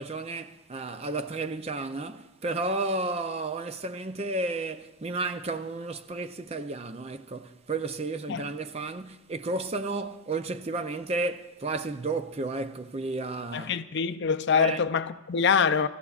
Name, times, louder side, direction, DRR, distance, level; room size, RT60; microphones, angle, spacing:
voice 1, 0.0-13.8 14.5-14.8, right 3 dB, 30° right, 0.4 m, -32 dB
voice 2, 13.5-15.9, left 6 dB, 50° left, 0.5 m, -25 dB
25.5 x 14.5 x 2.4 m
head